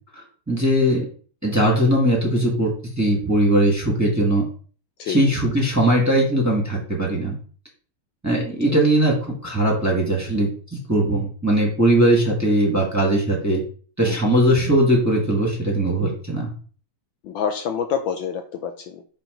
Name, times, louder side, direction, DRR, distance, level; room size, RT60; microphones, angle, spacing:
voice 1, 0.1-1.1 1.4-2.7 3.0-4.4 5.1-7.3 8.2-13.6 14.0-16.5, right 1 dB, 10° right, -3 dB, 1.7 m, -20 dB
voice 2, 14.0-14.3 17.2-19.0, left 7 dB, 70° left, 6 dB, 1.3 m, -27 dB
5.9 x 4.5 x 5.1 m, 0.42 s
omnidirectional pair, 2.4 m